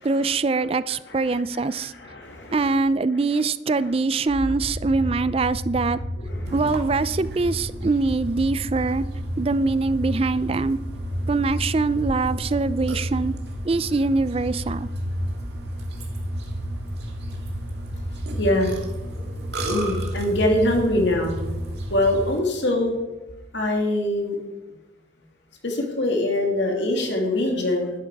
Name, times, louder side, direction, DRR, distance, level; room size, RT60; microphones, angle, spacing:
voice 1, 0.0-1.9 2.5-6.0 6.5-9.0 9.4-10.8 11.3-13.3 13.6-14.9, right 3 dB, 30° right, 16 dB, 0.4 m, -23 dB
voice 2, 1.1-1.4 1.7-2.8 3.7-3.9 6.3-6.7 18.4-18.7 19.6-21.4 21.9-22.9 23.5-24.5 25.6-27.9, left 1 dB, 65° left, 2 dB, 2.3 m, -24 dB
sound 1, 4.3-22.2, equal, 75° right, 1.8 m, -31 dB
Burping eructation, 6.5-22.4, right 2 dB, 55° right, 2.0 m, -39 dB
12.0 x 10.5 x 4.7 m, 1.1 s
head